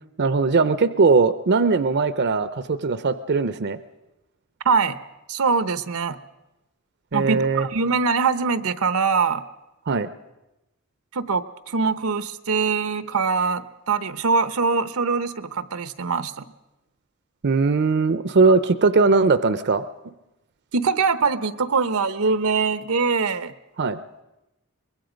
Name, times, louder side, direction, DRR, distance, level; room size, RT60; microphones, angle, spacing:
voice 1, 0.2-3.8 7.1-7.7 9.9-10.1 17.4-19.8 23.8-24.0, right 4 dB, 55° right, 13 dB, 0.6 m, -20 dB
voice 2, 4.6-5.0 5.3-6.2 7.1-9.4 11.1-16.4 20.7-23.5, right 5 dB, 90° right, 13 dB, 0.9 m, -23 dB
24.0 x 21.5 x 5.2 m, 0.97 s
head